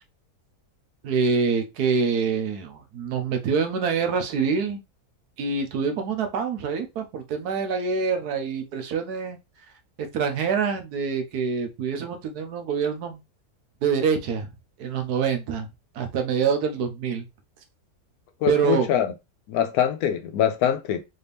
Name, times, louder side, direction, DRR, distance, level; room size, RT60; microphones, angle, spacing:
voice 1, 1.0-4.8 5.4-9.4 10.0-13.2 13.8-14.5 14.8-15.7 15.9-17.2 18.5-18.9, right 5 dB, 80° right, 1.4 m, -25 dB
voice 2, 18.4-19.1 19.5-21.0, left 9 dB, 75° left, 1.0 m, -23 dB
4.1 x 2.8 x 3.4 m
omnidirectional pair, 1.6 m